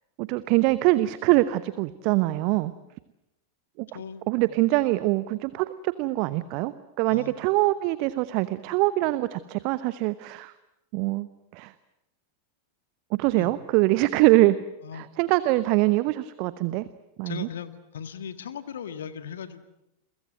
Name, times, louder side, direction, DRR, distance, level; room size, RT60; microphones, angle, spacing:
voice 1, 0.2-2.7 3.8-3.9 4.3-10.5 10.9-11.3 11.5-11.7 13.2-14.6 14.9-16.9 17.2-17.5, right 18 dB, 45° right, 15 dB, 0.9 m, -23 dB
voice 2, 3.9-4.6 7.1-7.3 13.4-13.5 14.8-15.1 17.2-19.7, left 8 dB, 65° left, 11 dB, 1.7 m, -38 dB
30.0 x 23.5 x 7.8 m, 0.89 s
figure-of-eight pair, 90°, 0 cm